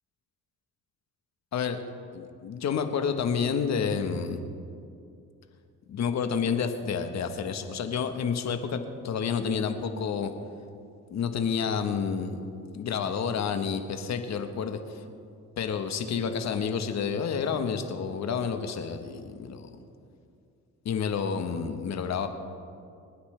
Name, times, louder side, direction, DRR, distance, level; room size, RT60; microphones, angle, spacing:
voice 1, 2.1-4.4 5.9-10.3 11.1-12.4 12.7-15.0 15.6-19.7 20.8-22.3, left 6 dB, 60° left, 7 dB, 1.2 m, -29 dB
26.0 x 9.7 x 3.3 m, 2.5 s
cardioid pair, 90°, 30 cm